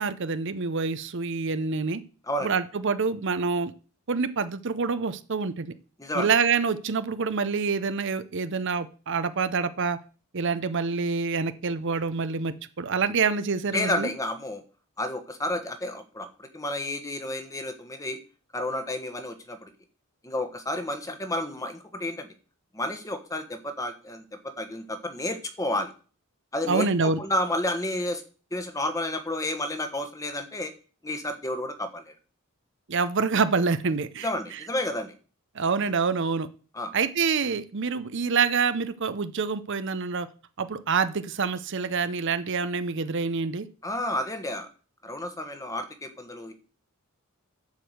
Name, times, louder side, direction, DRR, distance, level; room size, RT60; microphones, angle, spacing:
voice 1, 0.0-2.0 2.4-3.7 4.1-5.7 6.1-10.0 10.3-14.1 26.7-27.2 32.9-34.6 35.5-36.5 36.9-40.3 40.6-43.7, right 5 dB, 60° right, 12 dB, 0.7 m, -26 dB
voice 2, 13.7-14.6 15.0-16.3 16.5-18.2 18.5-19.7 20.2-22.3 22.7-24.2 24.6-25.9 26.5-28.2 28.5-30.7 31.0-32.1 34.2-35.1 36.7-36.9 43.8-44.7 45.0-46.5, left 1 dB, 15° left, 7 dB, 1.3 m, -31 dB
11.5 x 4.9 x 8.0 m, 0.39 s
head